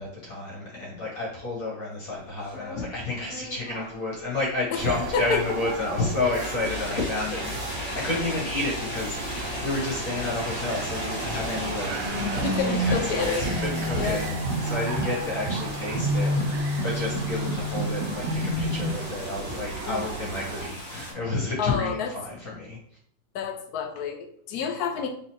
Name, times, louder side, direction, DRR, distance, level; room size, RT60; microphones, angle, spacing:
voice 1, 0.0-11.9 12.2-14.2 14.6-22.8, left 2 dB, 50° left, -5 dB, 1.9 m, -31 dB
sound 1, 2.2-21.1, left 1 dB, 25° left, 2.1 m, -37 dB
sound 2, 4.7-20.7, right 4 dB, 80° right, 1.3 m, -36 dB
sound 3, 12.0-18.9, equal, 60° right, 2.1 m, -28 dB
voice 2, 12.4-13.7 13.9-14.2 19.9-20.1 21.6-22.1 23.3-25.1, left 6 dB, 65° left, 4 dB, 1.0 m, -29 dB
4.1 x 3.8 x 3.0 m, 0.64 s
omnidirectional pair, 2.0 m